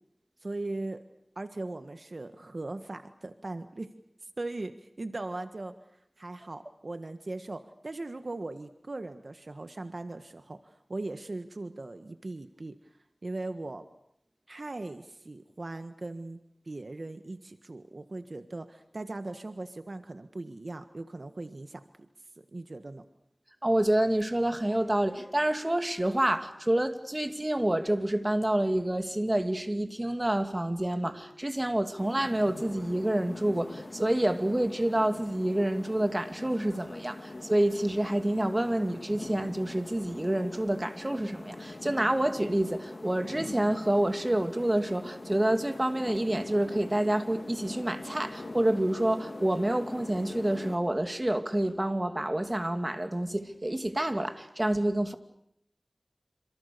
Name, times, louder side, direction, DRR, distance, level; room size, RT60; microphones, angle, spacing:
voice 1, 0.4-1.0 1.3-3.9 4.2-5.7 6.2-12.8 13.2-13.9 14.5-16.4 16.6-22.1 22.5-23.0, right 2 dB, 65° right, 1.5 m, -39 dB
voice 2, 23.6-55.1, right 1 dB, 30° right, 2.5 m, -28 dB
sound 1, 32.0-50.8, left 2 dB, 65° left, 2.6 m, -43 dB
28.0 x 26.5 x 6.8 m
wide cardioid pair, 50°, 0 cm